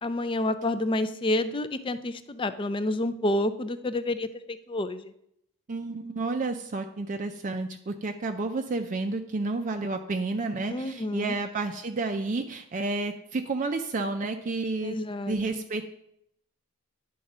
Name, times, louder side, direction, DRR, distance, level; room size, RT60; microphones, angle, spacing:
voice 1, 0.0-5.1 10.7-11.3 14.8-15.4, left 1 dB, 25° left, 11 dB, 0.4 m, -29 dB
voice 2, 5.7-15.0 15.3-15.9, right 3 dB, 35° right, 6 dB, 0.4 m, -30 dB
10.5 x 3.8 x 5.3 m, 0.75 s
head